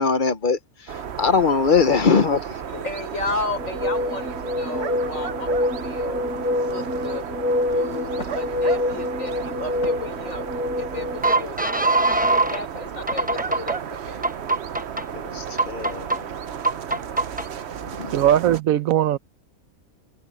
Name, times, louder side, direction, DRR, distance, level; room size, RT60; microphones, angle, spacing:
voice 1, 0.0-2.6 15.1-16.3 18.0-18.1, left 5 dB, 45° left, 0.9 m, -22 dB
sound 1, 0.9-18.6, right 8 dB, 55° right, 1.0 m, -33 dB
voice 2, 2.7-6.2 6.6-7.3 7.6-14.3, left 3 dB, 70° left, 4.4 m, -33 dB
sound 2, 3.6-12.6 13.1-13.8 14.2-15.0 15.6-16.2 16.6-17.5, right 1 dB, 10° right, 0.7 m, -24 dB
voice 3, 18.1-19.2, right 11 dB, 80° right, 1.2 m, -19 dB
omnidirectional pair, 1.4 m